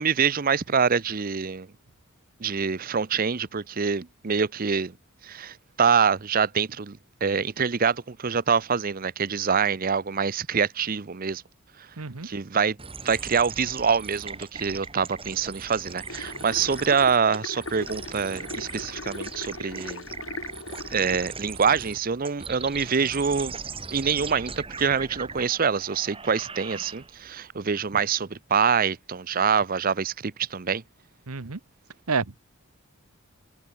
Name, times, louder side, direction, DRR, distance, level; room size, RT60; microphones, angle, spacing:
voice 1, 0.0-1.7 2.4-4.9 5.2-11.4 11.8-11.9 12.2-12.8 13.0-20.1 20.9-23.5 23.9-30.8, right 6 dB, 40° right, 0.6 m, -25 dB
voice 2, 12.0-12.3 31.3-31.6 32.1-32.4, right 4 dB, 80° right, 1.2 m, -29 dB
sound 1, 12.8-27.3, right 5 dB, 25° right, 2.6 m, -39 dB
sound 2, 16.1-21.3, left 2 dB, 65° left, 5.9 m, -39 dB
head